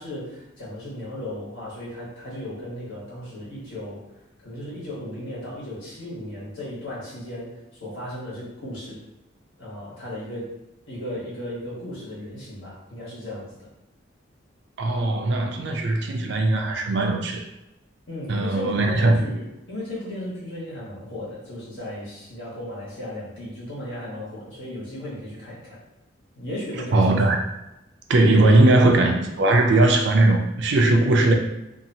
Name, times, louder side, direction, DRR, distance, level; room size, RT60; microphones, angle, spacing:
voice 1, 0.0-9.0 9.6-10.5 10.9-13.6 18.1-25.8 26.3-27.2, left 1 dB, 80° left, -7 dB, 1.4 m, -36 dB
voice 2, 14.8-17.4 18.3-19.2 26.9-27.4 28.1-31.3, right 2 dB, 60° right, 3 dB, 0.4 m, -19 dB
2.8 x 2.3 x 2.7 m, 0.91 s
head